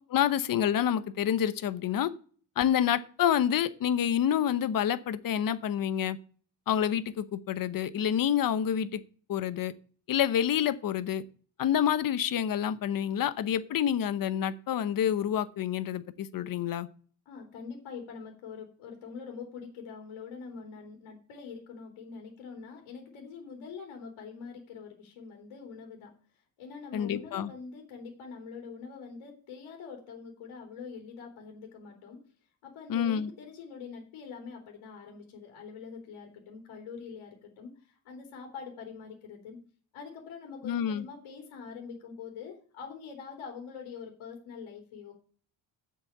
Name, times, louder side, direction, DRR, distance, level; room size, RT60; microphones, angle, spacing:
voice 1, 0.1-2.1 2.6-6.2 6.7-9.0 9.3-9.7 10.1-11.2 11.6-16.9 26.9-27.5 32.9-33.3 40.6-41.0, left 9 dB, 45° left, 14 dB, 0.9 m, -28 dB
voice 2, 17.2-32.2 32.6-39.6 39.9-45.1, left 5 dB, 80° left, 2 dB, 3.4 m, -44 dB
7.5 x 7.1 x 8.0 m, 0.43 s
cardioid pair, 155°, 47 cm